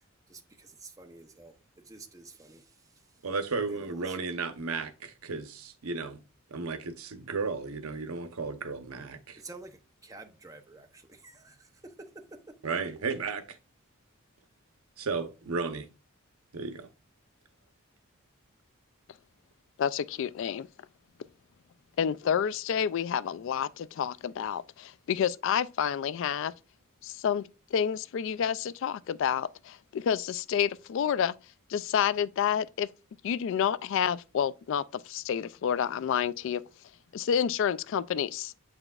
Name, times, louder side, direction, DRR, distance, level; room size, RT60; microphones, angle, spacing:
voice 1, 0.3-1.5 1.9-2.6 3.7-3.9 9.3-11.9, right 3 dB, 15° right, 0.7 m, -49 dB
voice 2, 3.2-6.2 6.5-9.4 12.6-13.6 15.0-15.9 16.5-16.9, right 4 dB, 85° right, 0.8 m, -34 dB
voice 3, 19.8-20.7 22.0-26.5 27.0-31.3 31.7-32.9 33.2-36.6 37.1-38.5, left 8 dB, 60° left, 0.3 m, -29 dB
7.8 x 5.8 x 2.4 m
head